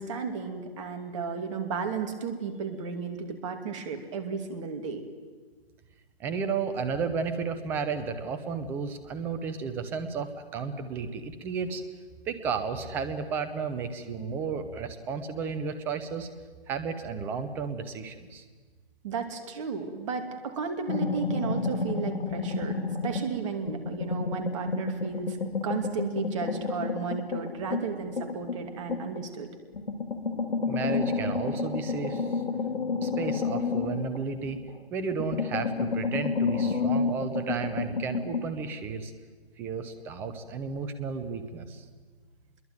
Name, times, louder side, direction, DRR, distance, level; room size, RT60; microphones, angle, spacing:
voice 1, 0.0-5.0 19.0-22.8 23.0-25.4 25.6-29.5, right 5 dB, 30° right, 6 dB, 2.6 m, -34 dB
voice 2, 6.2-11.8 12.3-16.3 16.7-18.4 30.7-32.3 33.0-34.6 34.9-39.1 39.6-41.8, right 5 dB, 5° right, 10 dB, 0.7 m, -33 dB
sound 1, 20.9-23.3 23.7-29.3 29.7-34.8 35.1-38.5, left 4 dB, 70° left, 3.3 m, -30 dB
26.0 x 22.0 x 9.2 m, 1.4 s
figure-of-eight pair, 150°, 32 cm